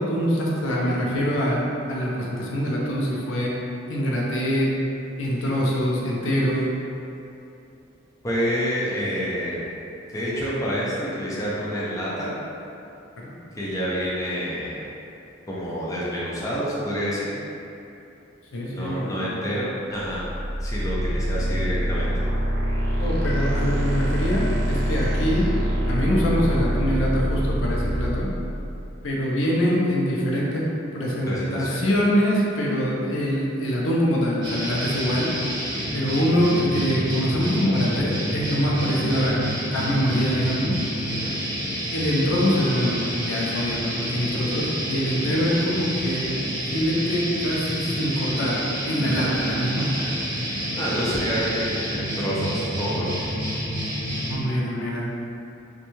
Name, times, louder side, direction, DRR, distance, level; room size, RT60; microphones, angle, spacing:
voice 1, 0.0-3.5 3.9-4.7 5.2-6.7 13.2-13.3 18.5-19.4 23.0-25.5 25.9-28.3 29.0-30.6 30.9-35.3 35.9-39.4 39.7-40.8 41.9-46.3 46.7-50.1 54.2-55.1, equal, 80° left, -4 dB, 0.5 m, -24 dB
voice 2, 8.2-9.6 10.1-12.3 13.6-14.8 15.5-17.3 18.7-20.2 20.6-22.3 31.3-31.9 41.1-41.4 49.0-49.3 50.4-53.1, equal, 15° left, -8 dB, 0.4 m, -28 dB
sound 1, 20.1-28.9, equal, 50° right, 0.6 m, -25 dB
sound 2, 34.4-54.4, equal, 25° right, 0.9 m, -29 dB
3.0 x 2.2 x 2.6 m, 2.8 s
head